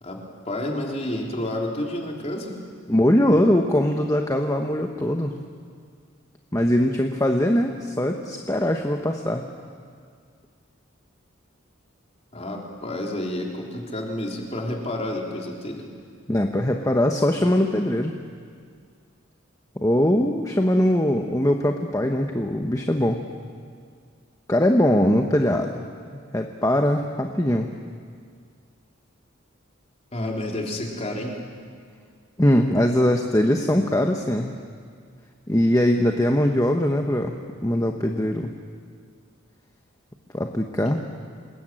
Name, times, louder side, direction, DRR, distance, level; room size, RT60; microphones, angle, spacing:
voice 1, 0.0-2.6 12.3-15.9 30.1-31.4 40.8-40.9, left 1 dB, 30° left, 0 dB, 3.6 m, -30 dB
voice 2, 2.9-5.3 6.5-9.4 16.3-18.2 19.8-23.2 24.5-25.8 26.1-27.7 32.4-34.6 35.5-37.4 37.6-38.5 40.3-41.0, left 1 dB, 15° left, 3 dB, 1.1 m, -21 dB
27.5 x 20.5 x 9.1 m, 2.1 s
head